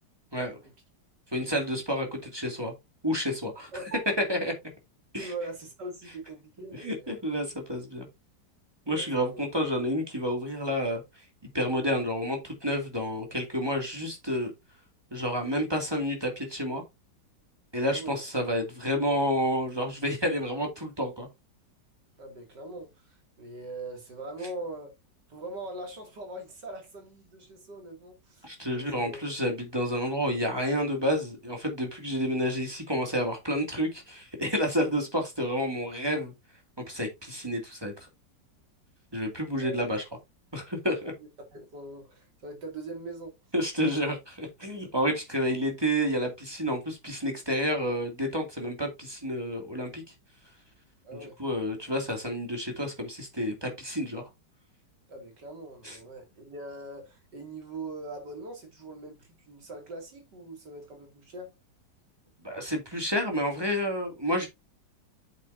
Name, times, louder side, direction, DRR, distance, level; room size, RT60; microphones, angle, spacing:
voice 1, 0.4-0.7 3.7-4.2 5.2-7.2 8.9-9.4 17.9-18.1 22.2-24.9 25.3-28.5 28.7-29.2 39.6-39.7 41.0-43.4 51.0-51.4 55.1-61.6, right 2 dB, 70° right, 3.2 m, -42 dB
voice 2, 1.3-2.7 3.0-3.7 4.3-4.5 5.1-5.3 6.7-8.1 8.9-11.0 11.5-14.5 15.1-16.8 17.7-21.3 28.4-36.3 36.9-37.9 39.1-40.0 40.5-41.1 43.5-50.0 51.1-54.3 55.8-56.0 62.4-64.5, equal, 15° right, 2.4 m, -30 dB
8.1 x 6.8 x 2.7 m
omnidirectional pair, 1.9 m